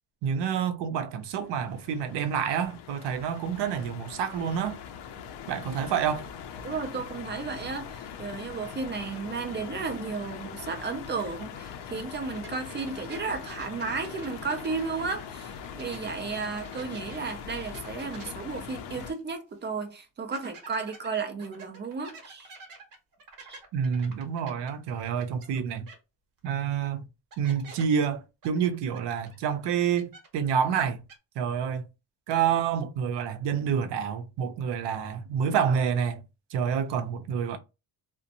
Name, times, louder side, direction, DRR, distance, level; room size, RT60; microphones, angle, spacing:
voice 1, 0.2-4.8 5.5-6.2 23.7-25.9 26.4-27.0 27.4-31.0 31.4-31.8 32.3-36.2 36.5-37.6, right 7 dB, 65° right, 0.6 m, -28 dB
sound 1, 1.2-19.1, left 8 dB, 65° left, 0.5 m, -42 dB
voice 2, 6.6-22.6 23.5-23.6, right 4 dB, 25° right, 0.4 m, -34 dB
sound 2, 12.3-16.1 16.4-19.3 19.6-19.7 20.3-25.6 25.9-26.0 26.8-26.9 27.3-27.8 28.4-30.5 30.8-31.2, right 4 dB, 50° right, 0.9 m, -48 dB
2.5 x 2.1 x 2.7 m
cardioid pair, 145°, 45 cm